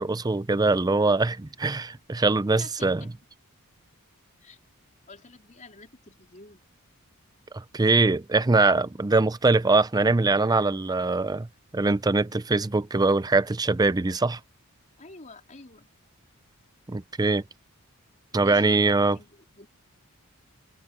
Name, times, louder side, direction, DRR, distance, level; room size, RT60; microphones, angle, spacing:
voice 1, 0.0-3.0 7.5-11.5 11.7-14.4 16.9-17.4 18.3-19.2, right 3 dB, 15° right, 0.5 m, -22 dB
voice 2, 2.5-3.1 4.4-4.6 5.1-6.6 15.0-15.9 18.3-19.7, left 3 dB, 35° left, 3.9 m, -48 dB
head